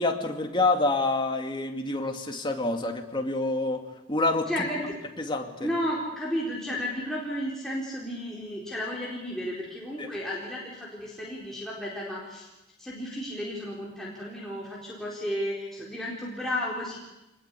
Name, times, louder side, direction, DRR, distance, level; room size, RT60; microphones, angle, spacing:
voice 1, 0.0-3.8 4.1-4.7 5.2-5.7 10.0-10.1, left 2 dB, 25° left, 4 dB, 2.4 m, -27 dB
voice 2, 4.5-4.9 5.6-12.5 12.8-17.0, equal, ahead, -6 dB, 4.3 m, -33 dB
25.5 x 20.0 x 8.5 m, 0.95 s
head